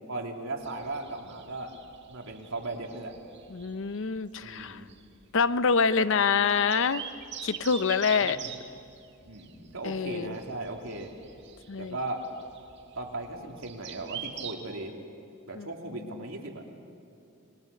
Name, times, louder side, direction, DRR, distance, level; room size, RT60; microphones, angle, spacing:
voice 1, 0.1-1.7 2.1-3.1 4.4-4.9 8.2-8.5 9.2-11.1 11.8-12.3 13.0-14.9 15.5-16.6, right 2 dB, 90° right, 1 dB, 2.7 m, -37 dB
sound 1, 0.6-14.5, right 8 dB, 55° right, 1.8 m, -44 dB
voice 2, 3.5-4.8 5.3-7.0 7.4-8.4 9.8-10.3 11.7-12.0 15.6-15.7, left 5 dB, 65° left, 14 dB, 0.7 m, -26 dB
27.5 x 21.5 x 6.7 m, 2.7 s
head